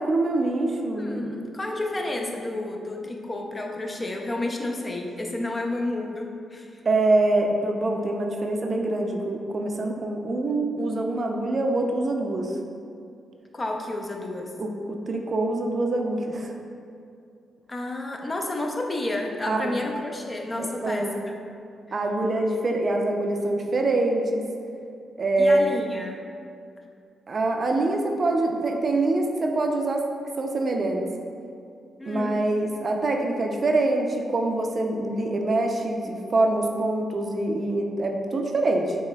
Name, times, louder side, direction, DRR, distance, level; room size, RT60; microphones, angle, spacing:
voice 1, 0.0-1.4 6.9-12.6 14.6-16.5 19.5-19.8 20.6-21.2 21.9-24.4 25.2-25.6 27.3-30.1 30.4-31.1 32.1-39.0, right 2 dB, 50° right, 2 dB, 0.4 m, -25 dB
voice 2, 0.9-6.8 13.5-14.5 17.7-21.3 21.9-22.0 25.4-26.2 32.0-32.4, left 2 dB, 35° left, 2 dB, 0.5 m, -31 dB
5.4 x 2.9 x 2.2 m, 2.4 s
supercardioid pair, 45°, 0 cm